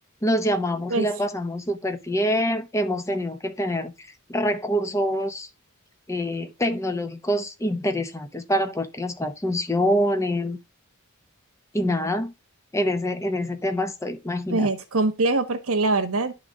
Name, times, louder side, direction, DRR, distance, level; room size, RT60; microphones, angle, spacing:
voice 1, 0.2-3.9 4.3-5.5 6.1-10.6 11.7-12.3 12.7-14.7, equal, 15° left, 0.7 m, -25 dB
voice 2, 14.5-16.3, right 2 dB, 65° right, 1.1 m, -23 dB
11.0 x 3.7 x 3.4 m
head